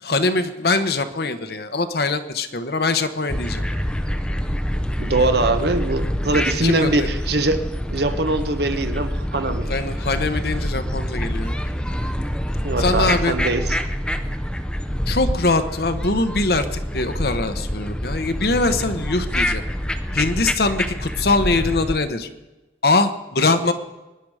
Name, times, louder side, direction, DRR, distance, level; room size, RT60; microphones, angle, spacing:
voice 1, 0.0-3.6 6.6-7.1 9.7-11.5 12.8-13.3 15.1-19.6 20.1-22.3 22.8-23.7, left 3 dB, 60° left, 9 dB, 1.0 m, -22 dB
sound 1, 3.3-22.0, equal, 5° left, 0.6 m, -26 dB
voice 2, 5.0-7.6 7.9-9.7 12.6-13.8, right 2 dB, 65° right, 8 dB, 1.1 m, -22 dB
23.5 x 10.5 x 4.9 m, 1.1 s
head